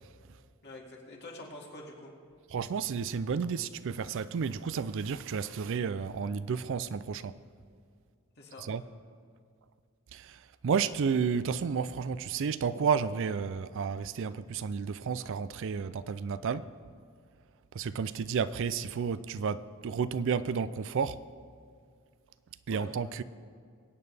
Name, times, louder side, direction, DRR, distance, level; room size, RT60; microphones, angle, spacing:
voice 1, 0.6-2.2 8.4-8.7 22.7-22.9, left 2 dB, 50° left, 2.3 m, -46 dB
voice 2, 2.5-7.3 8.6-8.8 10.1-16.7 17.7-21.2 22.7-23.2, right 6 dB, 60° right, 0.4 m, -31 dB
23.0 x 8.9 x 3.4 m
head